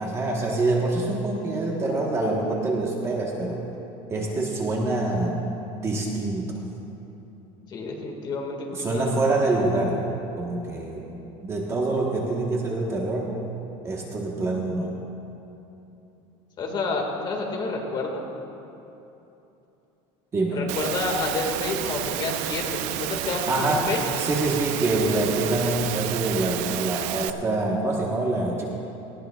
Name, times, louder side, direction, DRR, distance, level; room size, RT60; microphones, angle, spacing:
voice 1, 0.0-3.6 4.1-5.4 5.8-6.6 8.7-10.0 10.4-13.4 13.8-15.0 20.3-20.7 23.5-28.6, right 2 dB, 20° right, -1 dB, 1.1 m, -25 dB
voice 2, 7.7-9.1 16.6-18.2 20.5-24.0, left 3 dB, 30° left, 1 dB, 1.8 m, -29 dB
Engine / Mechanisms, 20.7-27.3, right 13 dB, 60° right, 0.4 m, -30 dB
18.5 x 16.5 x 2.3 m, 3.0 s
cardioid pair, 165°, 14 cm